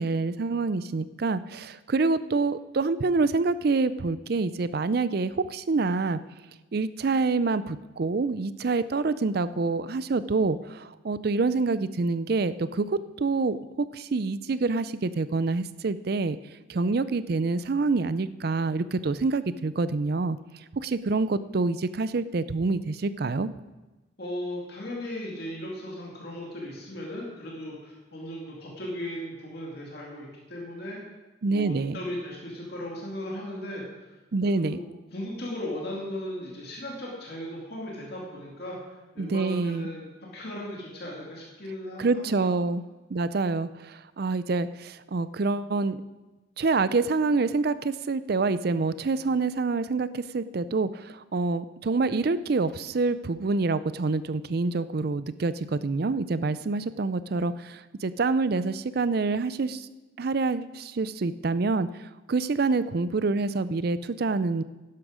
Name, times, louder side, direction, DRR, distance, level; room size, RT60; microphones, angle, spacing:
voice 1, 0.0-6.2 6.7-16.4 16.7-20.4 20.7-23.5 31.4-32.0 34.3-34.8 39.2-39.9 42.0-42.8 43.1-46.0 46.6-59.9 60.2-64.6, right 3 dB, 50° right, 15 dB, 0.4 m, -27 dB
voice 2, 24.2-31.0 31.4-33.8 34.5-34.8 35.1-40.1 40.3-42.5, left 1 dB, 50° left, -3 dB, 2.3 m, -37 dB
11.5 x 11.0 x 5.0 m, 1.1 s
head